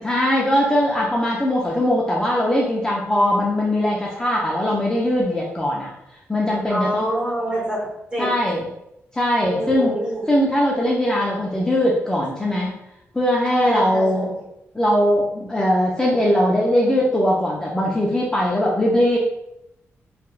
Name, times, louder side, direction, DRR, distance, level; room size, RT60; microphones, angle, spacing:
voice 1, 0.0-5.9 6.3-7.1 8.2-8.7 9.1-10.0 10.3-12.8 13.1-14.3 14.7-19.2, left 1 dB, 15° left, -4 dB, 0.5 m, -20 dB
voice 2, 6.7-8.3 9.5-10.2 13.5-14.3, right 1 dB, 20° right, -4 dB, 1.0 m, -25 dB
3.5 x 2.2 x 2.4 m, 0.83 s
wide cardioid pair, 110°, 5 cm